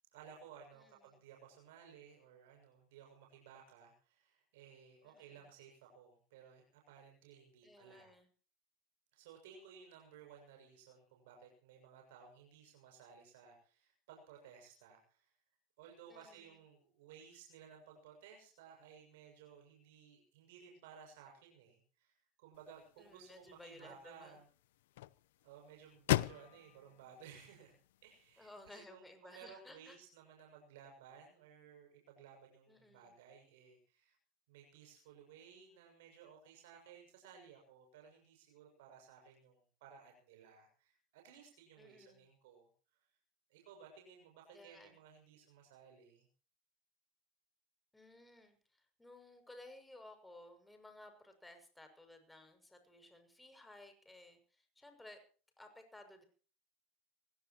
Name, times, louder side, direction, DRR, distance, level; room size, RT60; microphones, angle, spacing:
voice 1, 0.1-8.1 9.1-15.3 15.8-24.4 25.4-27.8 28.0-34.2 34.5-42.7 43.5-46.3, right 7 dB, 80° right, 2 dB, 6.8 m, -58 dB
voice 2, 0.7-1.2 5.0-5.4 7.6-8.3 16.1-16.6 23.0-24.4 28.4-30.0 32.7-33.1 41.8-42.3 44.5-45.0 47.9-55.2 55.6-56.2, left 1 dB, 10° left, 6 dB, 6.8 m, -57 dB
sound 1, 22.5-28.7, left 15 dB, 85° left, 0.7 m, -41 dB
24.0 x 18.0 x 3.1 m, 0.41 s
supercardioid pair, 100°, 0 cm